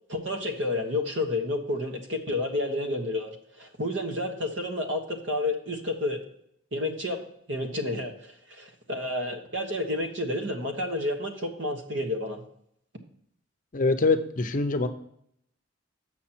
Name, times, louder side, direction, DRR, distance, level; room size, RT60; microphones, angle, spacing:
voice 1, 0.1-6.2 6.7-7.2 7.5-12.4, left 1 dB, 65° right, 4 dB, 1.3 m, -30 dB
voice 2, 13.7-14.9, left 3 dB, 40° left, 9 dB, 0.6 m, -24 dB
7.4 x 6.2 x 4.3 m, 0.72 s
head